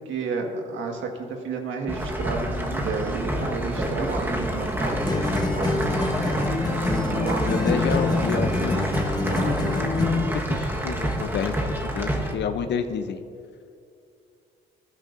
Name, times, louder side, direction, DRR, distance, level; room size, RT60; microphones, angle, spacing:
voice 1, 0.1-4.8, right 4 dB, 75° right, 2 dB, 1.7 m, -31 dB
sound 1, 1.9-12.3, right 1 dB, 10° right, 1.4 m, -28 dB
sound 2, 3.0-9.7, right 3 dB, 55° right, 2.0 m, -35 dB
sound 3, 5.1-10.4, left 3 dB, 20° left, 1.1 m, -25 dB
voice 2, 7.4-9.0 9.4-9.6 10.3-13.2, left 6 dB, 65° left, 8 dB, 0.7 m, -29 dB
19.5 x 10.5 x 2.6 m, 2.5 s
cardioid pair, 90°, 20 cm